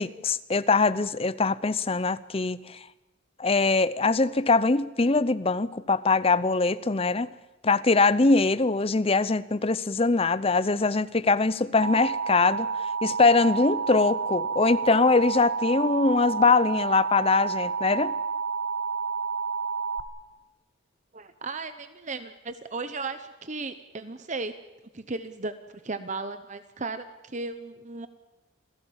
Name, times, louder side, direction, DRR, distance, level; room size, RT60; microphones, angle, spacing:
voice 1, 0.0-2.9 3.4-7.3 7.6-18.1, left 3 dB, 30° left, 16 dB, 0.7 m, -23 dB
Alarm, 11.8-20.0, right 5 dB, 55° right, 1.2 m, -30 dB
voice 2, 21.1-24.5 24.9-25.5 25.8-28.1, right 3 dB, 35° right, 11 dB, 0.9 m, -35 dB
27.5 x 17.0 x 7.3 m, 1.1 s
head